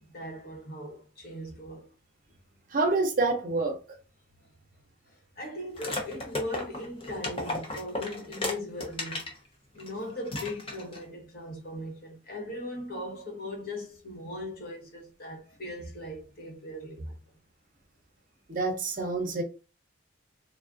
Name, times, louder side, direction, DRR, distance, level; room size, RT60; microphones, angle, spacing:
voice 1, 0.0-1.9 5.1-9.3 9.7-17.1, left 1 dB, 45° left, 1.1 m, -39 dB
voice 2, 2.7-3.8 18.5-19.4, right 3 dB, 40° right, 0.6 m, -27 dB
sound 1, 5.8-9.4 9.8-9.9 10.3-11.0, left 2 dB, 25° left, 0.6 m, -34 dB
3.4 x 2.4 x 2.4 m
head